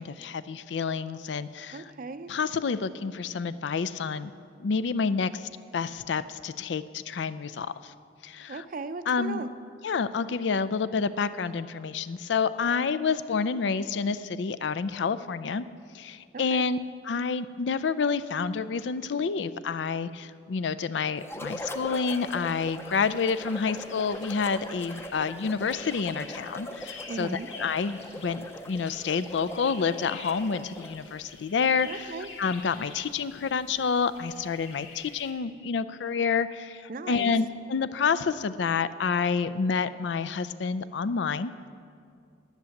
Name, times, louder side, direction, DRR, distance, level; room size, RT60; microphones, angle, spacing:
voice 1, 0.0-1.9 2.3-4.3 4.6-5.4 5.7-7.7 8.2-8.6 9.1-9.4 9.8-15.7 15.9-16.8 17.0-32.1 32.4-36.8 37.1-41.5, left 5 dB, 70° left, 14 dB, 0.4 m, -28 dB
voice 2, 1.7-2.3 8.5-9.5 16.3-16.6 27.1-27.5 31.8-32.3 36.9-37.3, right 3 dB, 50° right, 11 dB, 0.5 m, -37 dB
sound 1, 21.2-31.1, left 1 dB, 15° left, 0.6 m, -41 dB
sound 2, 22.1-35.3, left 3 dB, 90° left, 2.1 m, -47 dB
10.5 x 10.0 x 7.1 m, 2.3 s
head